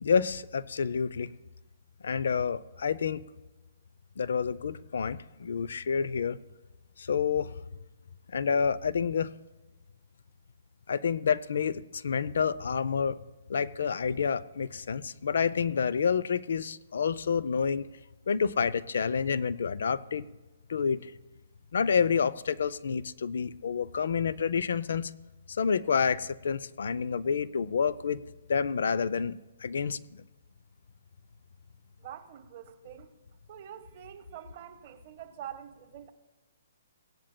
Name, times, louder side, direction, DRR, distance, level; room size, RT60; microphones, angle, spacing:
voice 1, 0.0-1.3 2.0-3.2 4.2-6.4 7.0-7.6 8.3-9.3 10.9-13.2 13.5-17.9 18.3-20.3 20.7-21.1 21.7-25.1 25.5-28.2 28.5-30.2, left 6 dB, 75° left, 16 dB, 0.5 m, -29 dB
voice 2, 32.0-33.1 33.5-36.1, right 10 dB, 40° right, 5 dB, 1.2 m, -45 dB
17.5 x 10.5 x 2.2 m, 1.1 s
hypercardioid pair, 150°, 0 cm